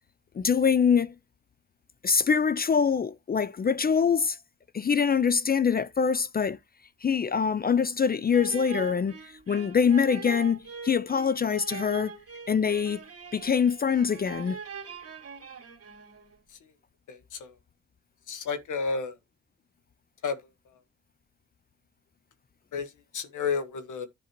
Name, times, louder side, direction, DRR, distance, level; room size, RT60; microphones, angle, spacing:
voice 1, 0.3-1.1 2.0-4.4 4.7-6.6 7.0-12.1 12.5-13.0 13.3-14.6, left 6 dB, 30° left, 0.4 m, -24 dB
sound 1, 8.3-16.4, right 5 dB, 50° right, 2.3 m, -42 dB
voice 2, 17.1-17.5 18.3-19.1 20.2-20.4 22.7-22.9 23.1-24.1, left 5 dB, 70° left, 1.5 m, -31 dB
10.5 x 5.3 x 2.9 m
cardioid pair, 75°, 32 cm